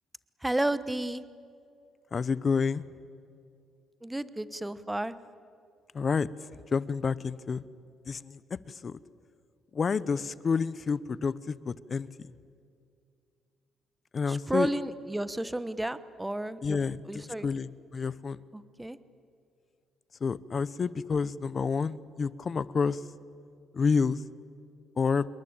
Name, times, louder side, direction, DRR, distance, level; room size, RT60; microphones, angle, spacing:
voice 1, 0.4-1.2 4.0-5.1 14.3-17.5 18.5-19.0, right 1 dB, 10° right, 15 dB, 1.1 m, -32 dB
voice 2, 2.1-2.8 5.9-6.3 6.7-7.6 8.1-8.4 8.8-9.0 9.7-12.1 14.1-14.7 16.6-17.0 17.4-18.4 20.2-23.0 23.7-24.2 25.0-25.3, left 5 dB, 40° left, 18 dB, 0.8 m, -29 dB
27.5 x 22.0 x 8.8 m, 2.4 s
cardioid pair, 90°, 0 cm